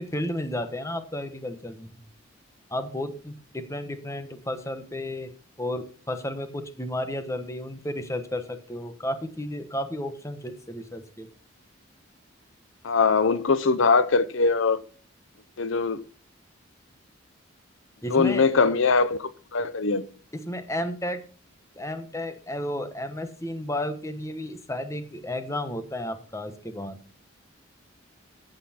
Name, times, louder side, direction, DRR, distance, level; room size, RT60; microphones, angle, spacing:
voice 1, 0.0-2.0 2.7-5.3 5.6-11.3 18.0-18.5 20.3-21.2 21.7-27.0, left 1 dB, 15° left, 1.1 m, -32 dB
voice 2, 12.8-14.8 15.6-16.0 18.1-20.0, left 4 dB, 70° left, 0.6 m, -22 dB
14.5 x 7.9 x 4.3 m
head